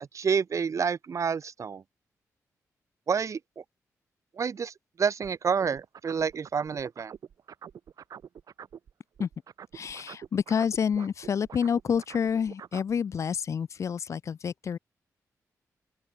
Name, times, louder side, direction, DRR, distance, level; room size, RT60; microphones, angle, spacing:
voice 1, 0.0-1.8 3.1-3.6 4.4-4.7 5.0-7.1, right 6 dB, 55° right, 1.0 m, -28 dB
sound 1, 5.2-8.9 9.2-12.9, right 8 dB, 75° right, 3.6 m, -46 dB
voice 2, 9.7-14.8, left 7 dB, 55° left, 0.3 m, -28 dB
open air
cardioid pair, 60°, 6 cm